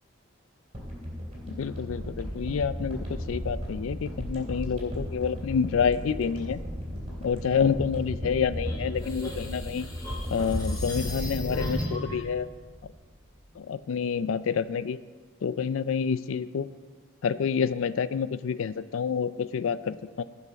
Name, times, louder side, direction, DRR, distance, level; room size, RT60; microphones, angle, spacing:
sound 1, 0.7-13.1 13.4-13.5, equal, 30° right, 2.8 m, -35 dB
voice 1, 1.5-6.6 7.2-9.9 10.3-12.5 13.6-15.0 15.4-16.7 17.2-20.2, left 6 dB, 70° left, 15 dB, 0.4 m, -28 dB
sound 2, 8.7-12.2, left 1 dB, 20° left, 2.3 m, -36 dB
16.5 x 5.7 x 4.0 m, 1.4 s
head